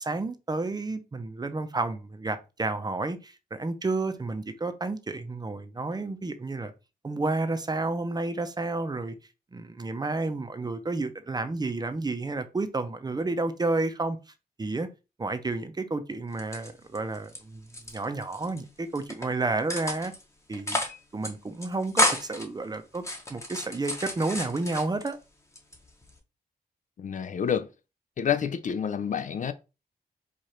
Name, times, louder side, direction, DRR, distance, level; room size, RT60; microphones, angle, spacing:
voice 1, 0.0-6.7 7.0-9.1 9.5-14.2 14.6-14.9 15.2-20.1 20.5-20.8 21.1-23.0 23.3-25.2, right 3 dB, 25° right, 0.7 m, -31 dB
sound 1, 16.3-17.4 17.7-18.6 19.0-19.3 19.7-20.2 20.5-21.0 21.2-21.3 21.6-22.5 22.9-25.1 25.6-26.2, left 1 dB, 20° left, 1.0 m, -30 dB
voice 2, 27.0-27.7 28.2-29.5, left 8 dB, 55° left, 0.5 m, -28 dB
4.8 x 2.5 x 4.3 m
cardioid pair, 95°, 16 cm